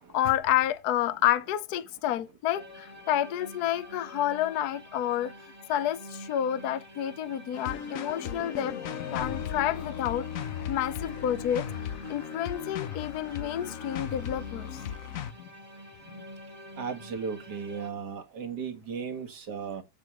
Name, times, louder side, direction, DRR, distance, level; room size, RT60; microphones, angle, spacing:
voice 1, 0.1-5.3 5.7-8.7 9.1-11.7 12.1-14.7 15.4-15.5 16.1-16.2, left 11 dB, 60° left, 1.1 m, -29 dB
sound 1, 2.5-17.9, equal, 20° right, 1.6 m, -47 dB
sound 2, 7.5-15.3, left 9 dB, 75° left, 0.7 m, -37 dB
voice 2, 16.7-19.8, right 6 dB, 50° right, 2.1 m, -36 dB
8.6 x 8.2 x 3.0 m
omnidirectional pair, 2.4 m